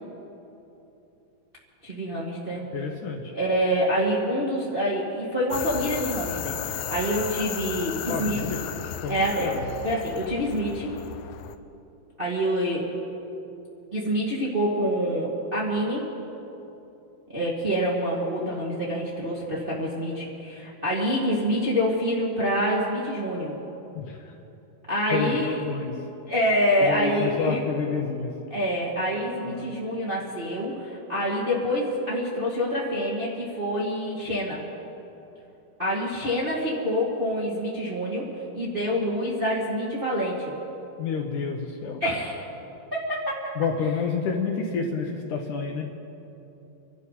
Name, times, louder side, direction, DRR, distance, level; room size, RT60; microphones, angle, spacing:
voice 1, 1.8-2.6 3.3-8.4 9.1-9.6 9.8-10.9 12.2-13.0 13.9-16.1 17.3-23.5 24.9-25.5 26.3-27.6 28.5-34.6 35.8-38.3 38.5-40.5 42.0-42.4 42.9-43.4 43.8-43.9, equal, 25° right, -5 dB, 1.3 m, -26 dB
voice 2, 2.7-3.3 8.1-9.1 9.4-9.6 24.0-24.2 25.1-26.0 26.8-28.3 29.4-29.6 41.0-42.0 43.6-45.9, left 5 dB, 70° left, 2 dB, 2.2 m, -29 dB
sound 1, 5.5-11.6, left 10 dB, 90° left, 1.8 m, -34 dB
26.5 x 12.0 x 4.1 m, 3.0 s
omnidirectional pair, 4.3 m